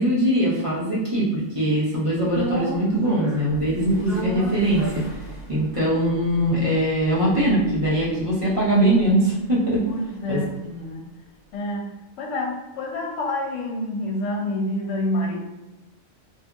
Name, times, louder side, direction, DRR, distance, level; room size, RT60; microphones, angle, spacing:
voice 1, 0.0-5.0 5.5-9.9 10.3-10.4, right 1 dB, 30° right, -7 dB, 0.8 m, -21 dB
sound 1, 2.3-10.6 10.9-11.0, right 2 dB, 40° left, 0.7 m, -36 dB
voice 2, 9.9-11.1 11.5-15.4, left 1 dB, 70° left, 1 dB, 0.9 m, -28 dB
2.7 x 2.6 x 2.3 m, 1.0 s
omnidirectional pair, 1.4 m